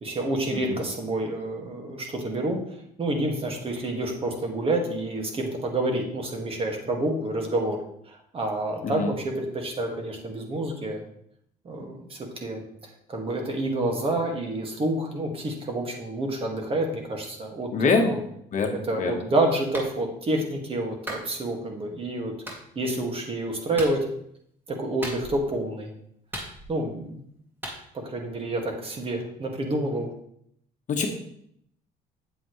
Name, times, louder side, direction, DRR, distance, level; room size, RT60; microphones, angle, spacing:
voice 1, 0.0-2.6 3.0-7.8 8.1-11.0 11.6-12.6 13.1-18.2 18.9-22.3 22.8-24.1 24.7-25.9 26.7-27.2 27.9-30.1, right 1 dB, 35° right, 2 dB, 1.9 m, -28 dB
voice 2, 17.7-18.1 18.5-19.1 30.9-31.1, left 4 dB, 45° left, 3 dB, 1.3 m, -24 dB
Clapping, 19.7-19.9 21.1-21.3 22.5-22.6 23.8-24.0 25.0-25.5 26.3-26.9 27.6-27.8, equal, 10° right, 2.2 m, -36 dB
8.5 x 7.8 x 3.2 m, 0.70 s
cardioid pair, 110°, 17 cm